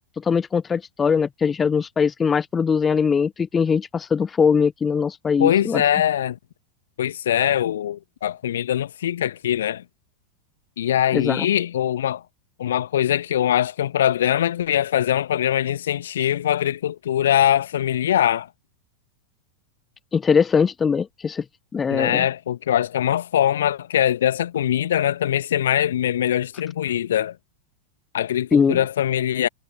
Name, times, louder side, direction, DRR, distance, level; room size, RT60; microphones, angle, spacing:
voice 1, 0.2-5.8 11.1-11.5 20.1-21.4 21.7-22.3 28.5-28.8, left 6 dB, 20° left, 0.8 m, -21 dB
voice 2, 5.4-6.4 7.0-9.8 10.8-12.2 12.6-18.5 21.9-27.4 28.1-29.5, left 11 dB, 60° left, 1.7 m, -22 dB
figure-of-eight pair, 90°, 0 cm